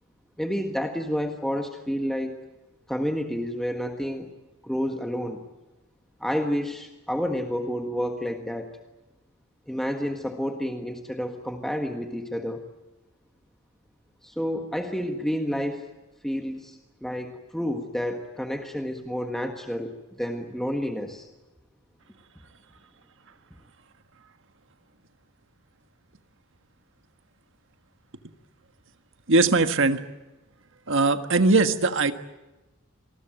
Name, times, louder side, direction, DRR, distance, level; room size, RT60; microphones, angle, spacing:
voice 1, 0.4-2.3 2.9-4.3 4.6-5.4 6.2-8.7 9.7-12.6 14.2-15.8 16.2-21.3, equal, ahead, 4 dB, 1.5 m, -30 dB
voice 2, 29.3-30.0 30.9-32.1, right 3 dB, 65° right, 8 dB, 1.6 m, -20 dB
27.0 x 21.0 x 9.1 m, 1.1 s
head